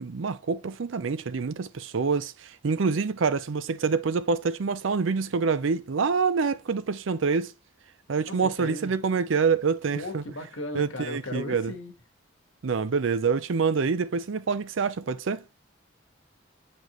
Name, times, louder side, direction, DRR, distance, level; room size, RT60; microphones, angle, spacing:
voice 1, 0.0-7.5 8.1-10.2 10.7-11.7 12.6-15.4, right 5 dB, 70° right, 0.5 m, -26 dB
voice 2, 8.3-8.9 9.9-11.9, left 2 dB, 70° left, 1.4 m, -36 dB
8.1 x 4.4 x 3.0 m
head